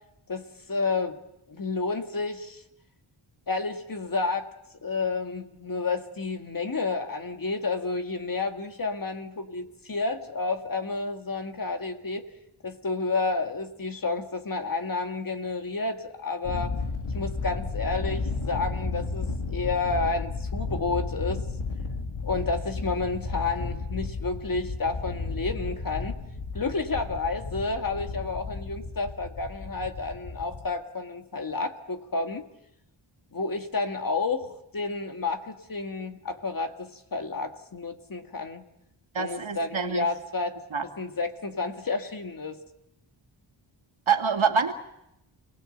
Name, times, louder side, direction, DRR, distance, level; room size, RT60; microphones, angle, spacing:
voice 1, 0.3-1.2 1.5-2.6 3.5-4.5 4.8-12.2 12.6-16.7 17.1-21.4 22.2-26.1 26.5-32.4 33.3-38.6 39.2-40.6 40.8-42.6, left 3 dB, 45° left, 6 dB, 2.1 m, -30 dB
Thunder, 16.4-30.7, left 3 dB, 75° left, 2.3 m, -33 dB
voice 2, 39.1-40.1 40.7-40.8 44.1-44.7, right 6 dB, 75° right, 5 dB, 2.4 m, -25 dB
28.5 x 19.5 x 8.0 m, 0.83 s
wide cardioid pair, 95°, 48 cm